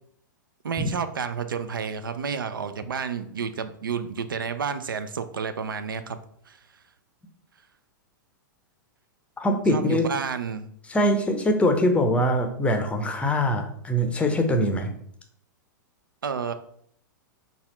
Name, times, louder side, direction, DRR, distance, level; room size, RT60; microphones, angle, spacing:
voice 1, 0.6-6.2 6.5-6.6 9.7-10.7 16.2-16.5, right 6 dB, 80° right, 10 dB, 0.4 m, -30 dB
voice 2, 9.4-10.1 10.9-14.9, equal, 10° left, 4 dB, 0.6 m, -23 dB
4.0 x 2.4 x 4.1 m, 0.65 s
figure-of-eight pair, 105°, 11 cm